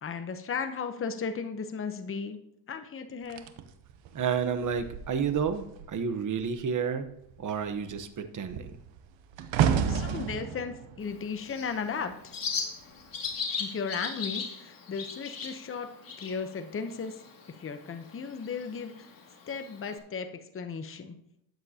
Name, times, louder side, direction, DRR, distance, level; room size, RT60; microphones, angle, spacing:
voice 1, 0.0-2.4 2.7-3.5 9.9-12.3 13.6-15.9 16.2-17.2 17.6-19.1 19.5-21.1, left 5 dB, 30° left, 7 dB, 0.9 m, -35 dB
sound 1, 3.3-6.0 6.3-6.7 7.0-12.3 13.1-13.3, right 8 dB, 80° right, 1.0 m, -32 dB
voice 2, 4.1-7.1 7.4-8.7, right 6 dB, 40° right, 9 dB, 1.1 m, -30 dB
Bird, 11.0-20.0, left 5 dB, 50° left, 2.3 m, -39 dB
13.0 x 9.1 x 2.9 m, 0.75 s
cardioid pair, 105°, 45 cm